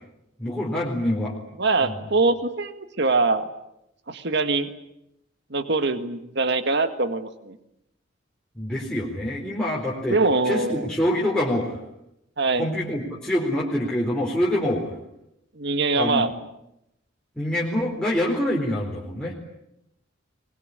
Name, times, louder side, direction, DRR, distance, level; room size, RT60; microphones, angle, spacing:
voice 1, 0.4-1.3 1.8-1.9 8.6-10.2 10.4-11.8 12.6-14.8 15.9-16.2 17.4-19.3, left 1 dB, 5° left, -5 dB, 4.2 m, -25 dB
voice 2, 1.6-2.7 3.0-3.5 4.1-4.7 5.5-7.6 10.1-10.9 12.4-12.7 15.6-16.3, right 3 dB, 60° right, 9 dB, 1.8 m, -23 dB
24.0 x 21.5 x 9.9 m, 0.82 s
head